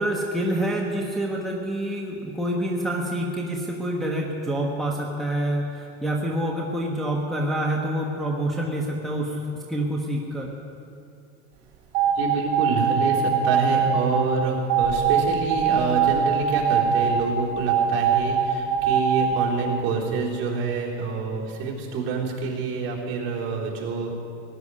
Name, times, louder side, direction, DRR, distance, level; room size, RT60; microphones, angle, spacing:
voice 1, 0.0-10.5, right 1 dB, ahead, -3 dB, 1.1 m, -27 dB
sound 1, 11.9-14.2 14.7-17.2 17.7-19.5, right 8 dB, 65° right, 3.1 m, -21 dB
voice 2, 12.1-24.2, right 4 dB, 50° right, -5 dB, 3.7 m, -27 dB
18.5 x 7.0 x 9.7 m, 2.5 s
cardioid pair, 155°, 32 cm